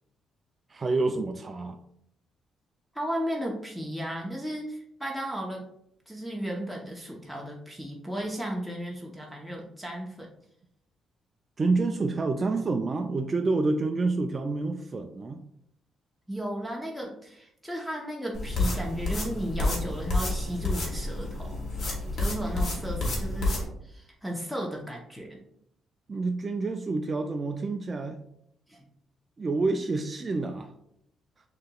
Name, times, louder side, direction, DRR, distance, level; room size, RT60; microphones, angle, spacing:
voice 1, 0.7-1.8 11.6-15.4 26.1-28.2 29.4-30.7, right 3 dB, 35° right, 5 dB, 0.3 m, -28 dB
voice 2, 2.9-5.6 6.1-10.3 16.3-21.6 22.1-25.3 28.7-28.9, equal, ahead, -1 dB, 0.8 m, -35 dB
sound 1, 18.3-23.6, left 2 dB, 55° left, 1.5 m, -29 dB
6.3 x 2.9 x 2.3 m, 0.74 s
cardioid pair, 90°, 0 cm